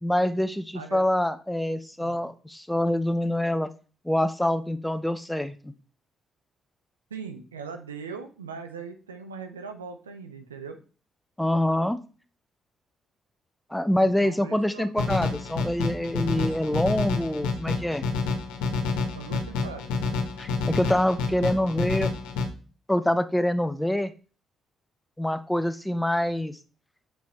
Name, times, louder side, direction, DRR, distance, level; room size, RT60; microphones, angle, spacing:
voice 1, 0.0-3.7 4.0-5.7 11.4-12.0 13.7-18.1 20.4-22.1 22.9-24.1 25.2-26.6, left 1 dB, 5° left, 12 dB, 0.9 m, -25 dB
voice 2, 0.7-1.1 2.0-2.2 7.1-10.8 14.0-14.9 16.2-16.6 19.1-19.9, right 5 dB, 90° right, 6 dB, 0.7 m, -40 dB
sound 1, 15.0-22.5, left 4 dB, 75° left, 1.4 m, -28 dB
7.1 x 6.1 x 4.3 m, 0.37 s
figure-of-eight pair, 40°, 0 cm